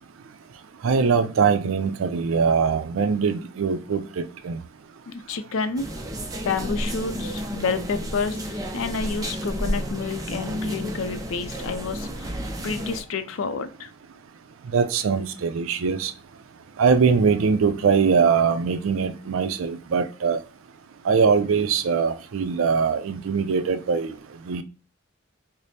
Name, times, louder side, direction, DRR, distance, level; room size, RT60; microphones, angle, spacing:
voice 1, 0.8-4.0 4.4-4.6 14.7-16.1 16.8-20.4 21.1-24.1 24.5-24.6, right 5 dB, 80° right, 0.4 m, -22 dB
voice 2, 5.1-5.9 6.4-12.3 12.6-13.9, left 5 dB, 80° left, 0.4 m, -29 dB
sound 1, 5.8-13.0, equal, 20° right, 0.4 m, -31 dB
4.9 x 2.0 x 2.7 m
head